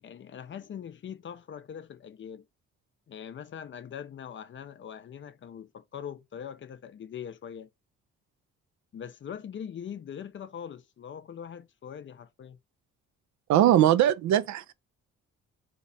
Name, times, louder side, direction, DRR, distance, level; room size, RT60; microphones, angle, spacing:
voice 1, 0.0-2.5 3.1-7.7 8.9-12.6, left 8 dB, 40° left, 0.5 m, -42 dB
voice 2, 13.5-14.7, right 11 dB, 70° right, 0.5 m, -21 dB
3.1 x 2.9 x 2.6 m
cardioid pair, 90°, 30 cm